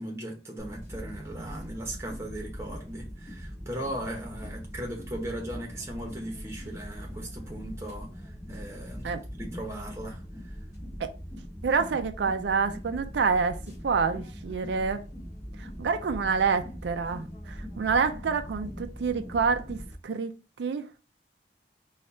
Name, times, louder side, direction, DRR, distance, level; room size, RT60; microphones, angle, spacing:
voice 1, 0.0-10.6, right 1 dB, 15° right, 1.0 m, -38 dB
sound 1, 0.6-19.9, equal, 20° left, 1.7 m, -41 dB
voice 2, 11.6-13.6 13.8-15.1 15.6-19.8 20.0-20.3 20.6-20.9, right 5 dB, 80° right, 0.4 m, -27 dB
4.3 x 2.4 x 4.1 m
head